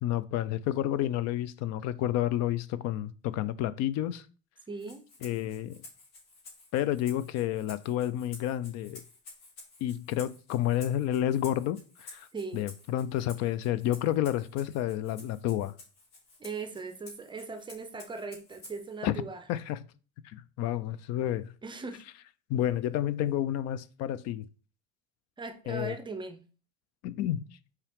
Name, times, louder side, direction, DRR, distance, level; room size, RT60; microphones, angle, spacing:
voice 1, 0.0-4.3 5.2-5.8 6.7-9.0 9.8-12.3 12.5-15.7 19.0-19.1 19.5-19.8 20.2-21.5 22.5-24.5 25.7-25.9 27.0-27.4, left 12 dB, 60° left, 0.4 m, -30 dB
voice 2, 4.7-5.0 12.3-12.7 16.4-19.4 21.6-22.0 25.4-26.4, right 4 dB, 15° right, 0.5 m, -39 dB
Rattle (instrument), 4.8-19.0, left 3 dB, 85° left, 2.7 m, -52 dB
5.6 x 4.8 x 3.5 m
cardioid pair, 160°, 30 cm